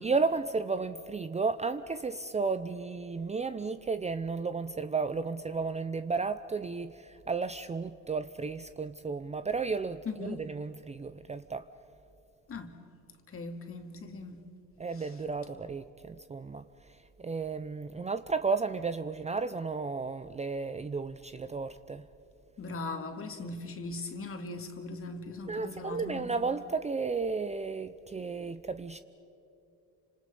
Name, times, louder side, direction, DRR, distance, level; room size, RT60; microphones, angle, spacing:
voice 1, 0.0-11.7 14.8-22.1 25.5-29.0, right 4 dB, 20° right, 0.6 m, -33 dB
voice 2, 10.1-10.4 12.5-12.7 13.3-14.4 22.6-26.3, left 3 dB, 40° left, 2.4 m, -39 dB
29.5 x 26.5 x 5.5 m
supercardioid pair, 85°, 35 cm